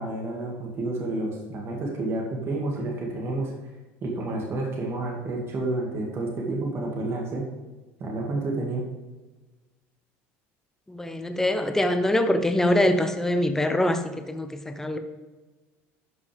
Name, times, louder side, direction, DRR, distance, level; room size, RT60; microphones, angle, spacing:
voice 1, 0.0-3.5 4.0-7.5 8.0-8.8, right 2 dB, 40° right, -1 dB, 2.0 m, -30 dB
voice 2, 10.9-15.0, left 1 dB, 5° left, 8 dB, 0.7 m, -24 dB
12.0 x 5.3 x 3.4 m, 1.2 s
supercardioid pair, 105°, 7 cm